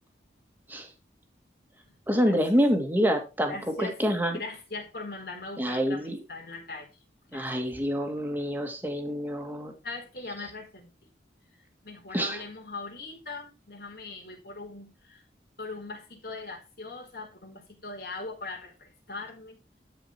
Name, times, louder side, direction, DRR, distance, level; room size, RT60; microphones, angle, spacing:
voice 1, 2.1-4.4 5.6-6.2 7.3-9.7 12.1-12.4, equal, 10° right, 3 dB, 2.1 m, -27 dB
voice 2, 3.5-4.0 4.3-6.9 7.3-7.4 9.8-11.1 11.8-15.2 15.6-19.6, left 3 dB, 60° left, 0 dB, 4.4 m, -40 dB
13.0 x 5.2 x 4.7 m, 0.29 s
head